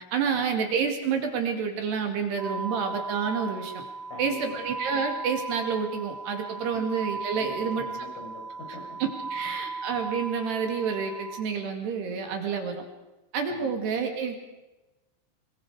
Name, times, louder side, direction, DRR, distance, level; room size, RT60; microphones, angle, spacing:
voice 1, 0.1-3.8 4.2-7.9 9.3-12.8 13.3-14.4, right 6 dB, 60° right, 4 dB, 4.0 m, -29 dB
sound 1, 2.4-11.4, right 4 dB, 85° right, 1.2 m, -37 dB
voice 2, 4.1-4.6 6.7-6.8 7.4-9.0 13.5-13.7, left 1 dB, 70° left, 2 dB, 7.1 m, -43 dB
27.5 x 22.5 x 5.0 m, 1.1 s
omnidirectional pair, 5.8 m